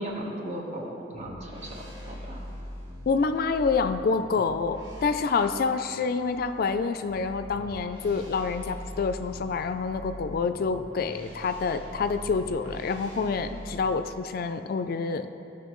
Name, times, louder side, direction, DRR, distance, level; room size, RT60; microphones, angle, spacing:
voice 1, 0.0-1.8 2.0-2.5 13.4-13.6, right 1 dB, 40° right, -2 dB, 1.2 m, -36 dB
sound 1, 1.1-13.9, equal, 90° right, 1.4 m, -43 dB
voice 2, 3.1-15.3, left 4 dB, 55° left, 9 dB, 0.4 m, -27 dB
14.5 x 5.9 x 3.1 m, 2.9 s
head